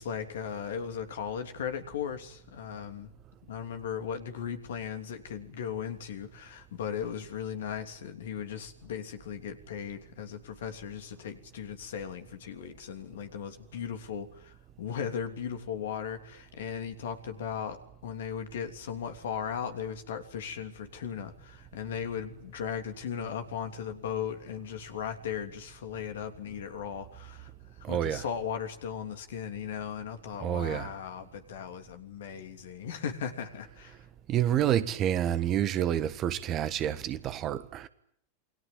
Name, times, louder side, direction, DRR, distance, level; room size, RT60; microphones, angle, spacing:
voice 1, 0.0-3.1 3.5-27.5 27.8-34.0, left 8 dB, 60° left, 3.0 m, -37 dB
voice 2, 27.8-28.2 30.4-30.9 34.3-37.9, right 10 dB, 35° right, 1.4 m, -28 dB
28.5 x 22.0 x 9.0 m
figure-of-eight pair, 90°, 0 cm